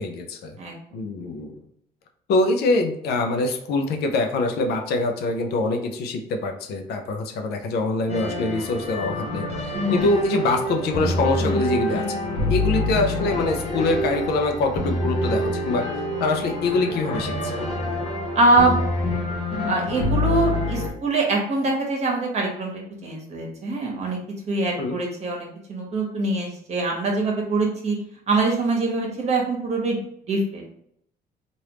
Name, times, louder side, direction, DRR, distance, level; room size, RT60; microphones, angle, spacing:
voice 1, 0.0-0.5 0.9-1.6 2.3-12.2 12.5-15.9 16.2-17.6 24.8-25.0, left 3 dB, 75° left, 5 dB, 0.6 m, -24 dB
sound 1, 8.1-20.9, left 1 dB, 40° left, 0.9 m, -26 dB
voice 2, 9.7-10.1 18.3-18.8 19.6-22.7 23.0-24.2 24.5-28.0 28.3-30.0 30.3-30.7, right 2 dB, 40° right, 0 dB, 1.2 m, -23 dB
3.3 x 2.6 x 3.0 m, 0.70 s
cardioid pair, 110°, 17 cm